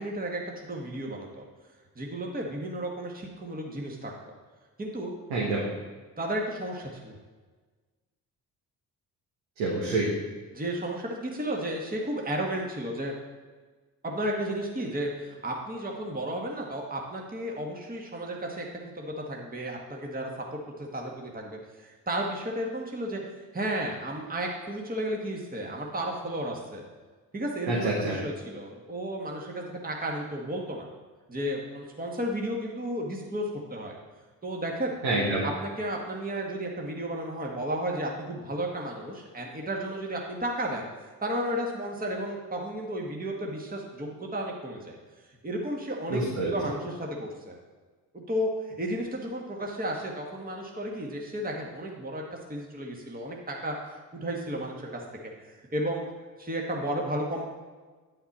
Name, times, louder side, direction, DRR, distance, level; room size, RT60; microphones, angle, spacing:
voice 1, 0.0-1.5 2.0-4.1 4.8-5.1 6.2-7.1 10.5-13.1 14.0-18.7 18.9-23.2 23.5-26.8 27.3-30.9 31.3-34.0 34.4-35.0 35.4-44.9 45.4-47.5 48.1-52.2 52.5-55.0 55.5-56.0 56.4-57.5, right 1 dB, 20° right, 0 dB, 1.6 m, -33 dB
voice 2, 5.3-5.6 9.6-10.0 27.7-28.2 35.0-35.4 46.1-46.5, right 2 dB, 85° right, -4 dB, 1.5 m, -27 dB
9.5 x 5.8 x 4.2 m, 1.4 s
hypercardioid pair, 50°, 41 cm